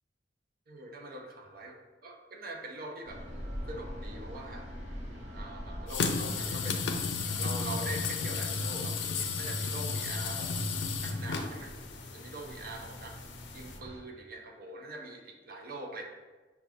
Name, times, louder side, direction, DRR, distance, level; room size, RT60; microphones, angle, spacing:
voice 1, 0.7-3.2 3.7-4.7 5.3-6.9 7.2-10.6 11.0-11.7 12.1-13.1 13.5-16.1, right 2 dB, 55° right, 2 dB, 0.6 m, -43 dB
sound 1, 3.0-14.0, equal, 85° right, 0.9 m, -45 dB
sound 2, 5.9-13.8, left 4 dB, 75° left, 0.4 m, -34 dB
6.0 x 2.3 x 3.5 m, 1.3 s
head